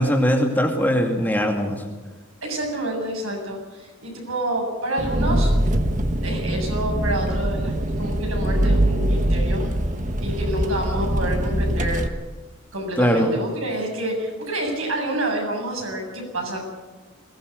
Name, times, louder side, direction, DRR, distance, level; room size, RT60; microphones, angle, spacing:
voice 1, 0.0-1.8 13.0-13.3, equal, 10° left, 1 dB, 2.4 m, -20 dB
voice 2, 2.4-5.5 6.2-9.6 10.2-12.0 12.7-16.6, right 1 dB, 80° right, 1 dB, 7.5 m, -28 dB
Engine, 5.0-12.1, right 1 dB, 35° right, 1.4 m, -22 dB
21.5 x 18.0 x 8.1 m, 1.2 s
head